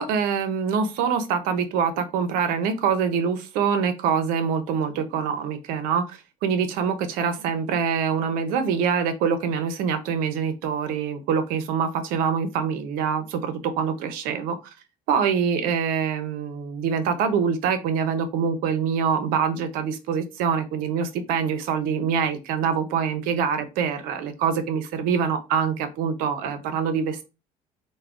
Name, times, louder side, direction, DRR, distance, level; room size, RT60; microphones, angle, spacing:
voice 1, 0.0-14.6 15.1-27.2, right 6 dB, 80° right, 0.6 m, -25 dB
3.4 x 2.1 x 2.4 m
cardioid pair, 105°, 15 cm